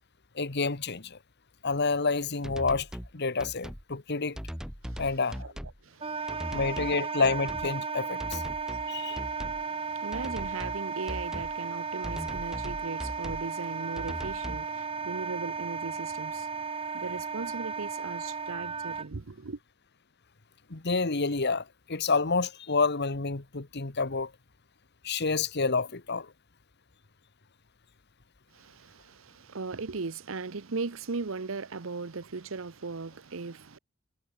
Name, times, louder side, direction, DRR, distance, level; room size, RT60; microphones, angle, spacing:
voice 1, 0.3-1.2 1.6-2.9 3.1-4.4 5.0-5.4 6.5-8.4 8.9-9.2 20.7-24.3 25.0-26.3, left 4 dB, 55° left, 1.4 m, -29 dB
sound 1, 2.4-3.1 3.4-3.8 4.3-5.8 6.3-7.0 7.2-7.7 8.2-8.9 9.1-9.6 10.1-10.8 11.1-11.5 12.0-13.5 14.0-14.7, equal, 5° right, 1.3 m, -39 dB
voice 2, 5.8-6.6 8.7-16.5 16.9-19.6 28.5-33.8, right 4 dB, 70° right, 0.8 m, -38 dB
Wind instrument woodwind instrument, 6.0-19.1, right 5 dB, 25° right, 1.1 m, -35 dB
head